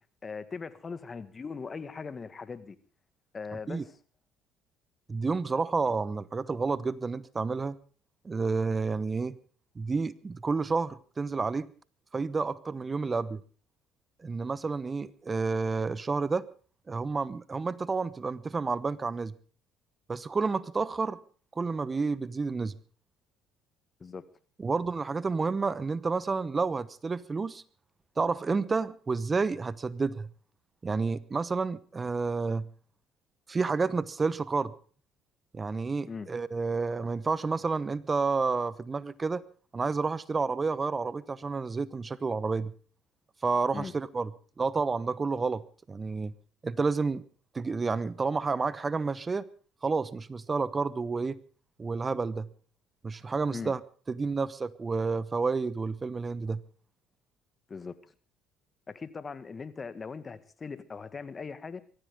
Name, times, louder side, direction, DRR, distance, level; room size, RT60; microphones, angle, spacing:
voice 1, 0.2-2.8 3.3-4.0 24.0-24.2 36.1-36.3 43.7-43.9 53.5-53.7 57.7-58.0 58.9-61.8, left 5 dB, 35° left, 14 dB, 1.7 m, -40 dB
voice 2, 5.1-7.8 8.2-9.4 9.8-11.7 12.1-13.4 14.2-16.5 16.9-19.3 20.1-21.2 21.6-22.7 24.6-27.6 28.2-30.3 30.8-32.7 33.5-34.7 35.5-39.4 39.7-42.7 43.4-44.3 44.6-45.6 45.9-46.3 46.6-47.2 47.5-49.4 49.8-51.4 51.8-52.5 53.0-53.8 54.1-56.6, right 4 dB, 30° right, 19 dB, 0.9 m, -30 dB
23.0 x 14.5 x 3.7 m, 0.41 s
hypercardioid pair, 65°, 0 cm